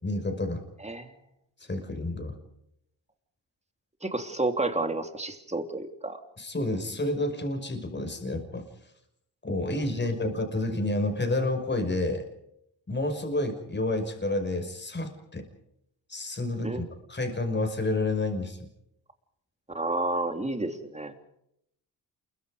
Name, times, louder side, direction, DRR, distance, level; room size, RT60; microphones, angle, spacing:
voice 1, 0.0-0.6 1.7-2.4 6.4-8.7 9.4-12.2 12.9-15.5 16.1-18.6, left 2 dB, 25° left, 6 dB, 5.8 m, -29 dB
voice 2, 4.0-6.2 16.6-16.8 19.7-21.1, right 2 dB, 15° right, 6 dB, 3.1 m, -30 dB
28.5 x 23.0 x 5.0 m, 0.77 s
cardioid pair, 85°, 44 cm